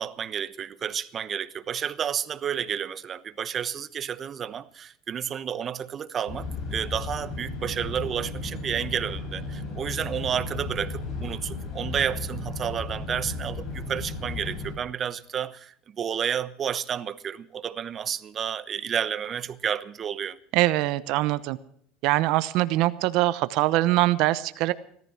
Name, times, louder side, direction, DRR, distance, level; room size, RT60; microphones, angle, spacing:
voice 1, 0.0-20.4, right 8 dB, 35° right, 1.0 m, -31 dB
sound 1, 6.3-14.7, left 3 dB, 55° left, 7.7 m, -34 dB
voice 2, 20.5-21.6 22.0-24.7, right 17 dB, 65° right, 0.9 m, -23 dB
17.0 x 14.0 x 5.9 m
supercardioid pair, 125°, 0 cm